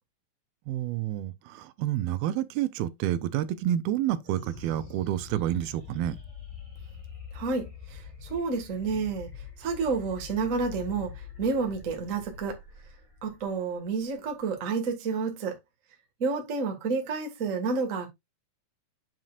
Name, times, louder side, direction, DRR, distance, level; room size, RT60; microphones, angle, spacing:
voice 1, 0.7-6.2, right 12 dB, 85° right, 2.5 m, -29 dB
sound 1, 4.2-14.9, left 6 dB, 10° left, 2.1 m, -45 dB
voice 2, 7.3-9.3 9.6-11.1 11.4-12.5 13.2-15.5 16.2-18.1, right 4 dB, 40° right, 1.1 m, -30 dB
7.7 x 7.4 x 2.4 m
omnidirectional pair, 4.3 m